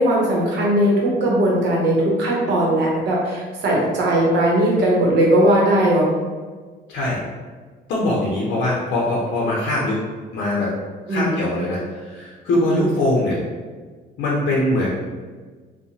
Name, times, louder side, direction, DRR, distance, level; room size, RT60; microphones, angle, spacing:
voice 1, 0.0-6.1 11.1-11.4 12.7-12.9, right 1 dB, 75° right, -3 dB, 0.8 m, -18 dB
voice 2, 6.9-7.2 7.9-10.0 10.3-10.7 11.1-13.4 14.2-14.9, left 1 dB, 80° left, -5 dB, 0.5 m, -22 dB
2.8 x 2.0 x 2.6 m, 1.4 s
cardioid pair, 95°, 18 cm